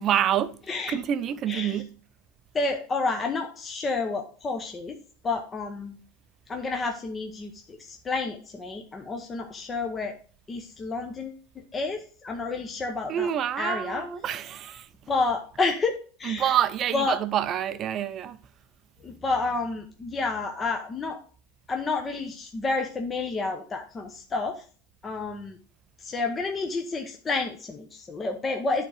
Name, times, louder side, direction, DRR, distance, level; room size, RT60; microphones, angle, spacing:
voice 1, 0.0-0.5 0.9-1.9 13.1-14.9 16.2-18.4, right 10 dB, 35° right, 0.5 m, -27 dB
voice 2, 1.5-1.8 2.5-4.9 5.2-5.9 6.5-10.1 10.5-11.4 11.7-13.3 13.6-14.1 15.1-16.6 16.9-17.2 19.0-21.2 21.7-24.6 25.0-25.6 26.0-28.8, left 3 dB, 20° left, 0.8 m, -30 dB
9.4 x 3.9 x 4.8 m
supercardioid pair, 140°, 0 cm